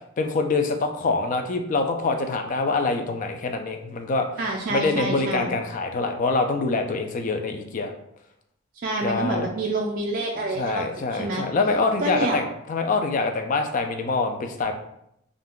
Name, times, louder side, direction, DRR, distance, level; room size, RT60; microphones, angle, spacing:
voice 1, 0.2-4.3 4.7-7.9 9.0-9.5 10.6-14.7, left 3 dB, 40° left, 5 dB, 0.3 m, -25 dB
voice 2, 4.4-5.6 8.8-11.4 12.0-12.4, right 2 dB, 45° right, -1 dB, 0.3 m, -27 dB
2.5 x 2.2 x 3.6 m, 0.77 s
head